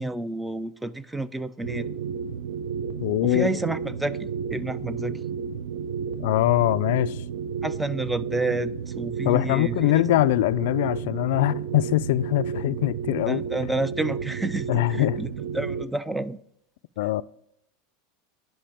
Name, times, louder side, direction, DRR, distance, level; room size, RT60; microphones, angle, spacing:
voice 1, 0.0-1.9 3.2-5.2 7.6-10.0 13.3-16.4, right 2 dB, 5° right, 0.3 m, -30 dB
sound 1, 1.6-15.8, right 6 dB, 80° right, 0.5 m, -32 dB
voice 2, 3.0-3.5 6.2-7.2 9.3-13.4 14.7-15.2 17.0-17.2, left 16 dB, 70° left, 0.3 m, -22 dB
10.0 x 5.3 x 3.5 m
supercardioid pair, 140°, 0 cm